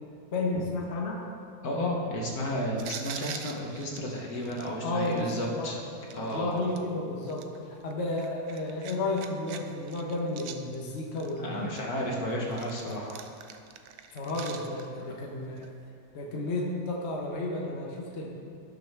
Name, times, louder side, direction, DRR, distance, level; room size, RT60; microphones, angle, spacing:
voice 1, 0.3-1.2 4.8-5.7 6.1-11.7 14.1-15.7 16.1-18.3, left 2 dB, 40° left, -1 dB, 1.3 m, -32 dB
voice 2, 1.6-5.8 6.1-6.6 11.4-13.2 15.2-15.3, equal, 55° left, -2 dB, 1.7 m, -32 dB
sound 1, 2.8-5.5 6.1-6.8 7.3-9.6 9.8-11.3 11.7-15.0 15.6-15.7, right 8 dB, 65° right, 1.0 m, -44 dB
17.5 x 6.4 x 3.5 m, 2.4 s
omnidirectional pair, 1.9 m